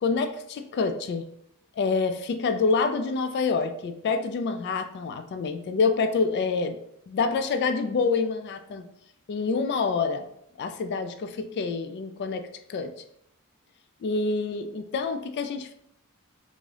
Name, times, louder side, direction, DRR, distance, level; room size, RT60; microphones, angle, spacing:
voice 1, 0.0-1.2 1.8-6.8 7.1-8.9 9.3-10.3 10.6-12.9 14.0-15.7, left 4 dB, 50° left, 8 dB, 0.3 m, -27 dB
3.4 x 2.7 x 3.3 m, 0.73 s
head